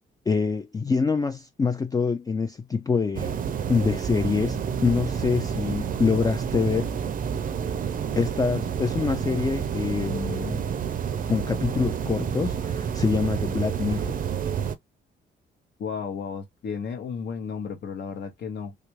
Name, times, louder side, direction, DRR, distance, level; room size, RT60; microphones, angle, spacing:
voice 1, 0.3-3.4 3.7-6.9 8.2-10.6 11.3-14.2, left 5 dB, 20° left, 0.3 m, -25 dB
sound 1, 3.2-14.8, right 7 dB, 45° right, 0.5 m, -29 dB
voice 2, 15.8-18.7, left 6 dB, 60° left, 0.8 m, -33 dB
3.2 x 2.4 x 3.1 m
cardioid pair, 90°, 20 cm